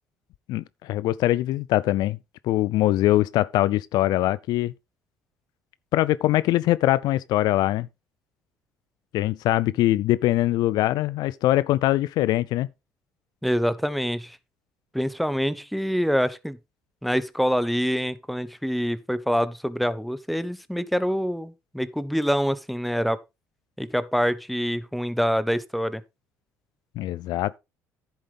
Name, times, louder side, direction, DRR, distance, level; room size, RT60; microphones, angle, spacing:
voice 1, 0.5-2.2 2.4-4.7 5.9-7.9 9.1-12.7 27.0-27.6, left 15 dB, 70° left, 0.4 m, -22 dB
voice 2, 13.4-14.4 14.9-16.6 17.0-23.2 23.8-26.0, equal, ahead, 1.0 m, -25 dB
10.5 x 7.8 x 3.5 m
supercardioid pair, 70°, 7 cm